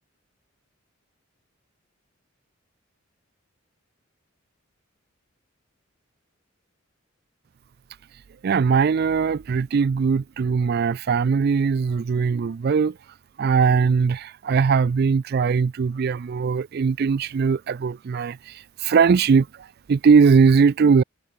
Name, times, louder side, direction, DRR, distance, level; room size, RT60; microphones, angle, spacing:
voice 1, 8.4-12.9 13.4-18.5 18.8-19.5 19.9-21.0, right 5 dB, 50° right, 0.3 m, -20 dB
head